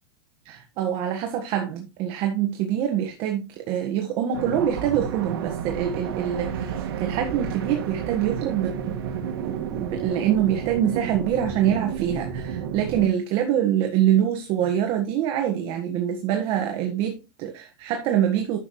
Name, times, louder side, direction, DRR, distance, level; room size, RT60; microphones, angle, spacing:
voice 1, 0.4-9.0 9.4-18.6, right 10 dB, 45° right, 1.5 m, -25 dB
sound 1, 4.3-13.1, right 8 dB, 75° right, 1.9 m, -31 dB
11.0 x 7.3 x 3.1 m
supercardioid pair, 145°, 13 cm